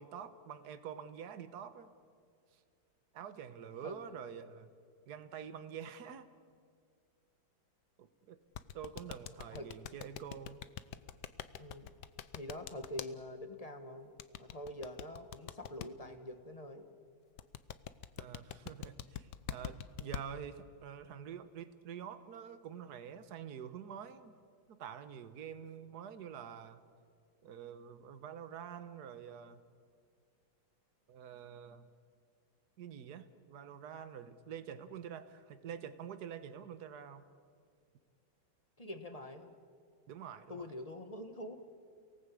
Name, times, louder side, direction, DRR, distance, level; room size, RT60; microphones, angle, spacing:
voice 1, 0.0-1.9 3.1-4.7 5.1-6.3 8.0-8.4 8.7-10.6 18.2-24.3 24.7-26.8 27.4-29.6 31.1-31.9 32.8-37.2 40.1-40.6, right 8 dB, 60° right, 11 dB, 1.6 m, -47 dB
sound 1, 8.5-13.1 14.2-15.9 17.4-20.2, left 10 dB, 65° left, 1.3 m, -43 dB
voice 2, 11.6-11.9 12.3-14.1 14.4-16.9 38.8-39.6 40.5-41.6, left 1 dB, 20° left, 7 dB, 1.4 m, -45 dB
30.0 x 18.5 x 8.6 m, 2.2 s
omnidirectional pair, 2.0 m